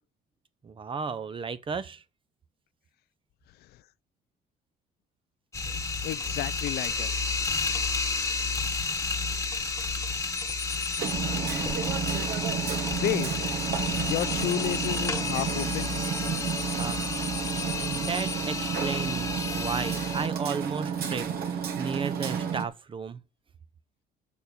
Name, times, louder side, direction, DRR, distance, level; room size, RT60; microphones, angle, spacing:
voice 1, 0.6-2.0 16.8-17.1 17.8-23.2, right 5 dB, 30° right, 0.8 m, -34 dB
sound 1, 5.5-20.3, left 4 dB, 15° left, 1.3 m, -31 dB
voice 2, 6.0-7.3 12.9-13.5 14.0-15.9, left 14 dB, 70° left, 0.5 m, -32 dB
sound 2, 10.4-11.1 12.7-18.4 20.1-21.1, left 7 dB, 40° left, 1.3 m, -42 dB
Hammer, 11.0-22.6, right 7 dB, 65° right, 1.6 m, -31 dB
7.1 x 6.5 x 7.0 m
cardioid pair, 110°, 17 cm